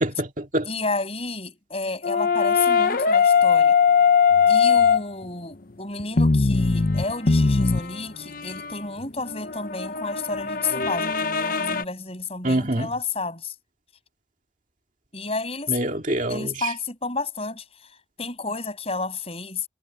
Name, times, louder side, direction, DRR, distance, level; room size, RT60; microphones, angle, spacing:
voice 1, 0.0-0.7 12.4-12.9 15.7-16.7, right 1 dB, 40° right, 2.2 m, -25 dB
voice 2, 0.6-3.8 4.5-13.5 15.1-15.8 16.3-17.6 18.2-19.7, left 3 dB, 30° left, 7.9 m, -31 dB
sound 1, 2.0-5.2 6.0-11.8, left 5 dB, 45° left, 0.8 m, -20 dB
head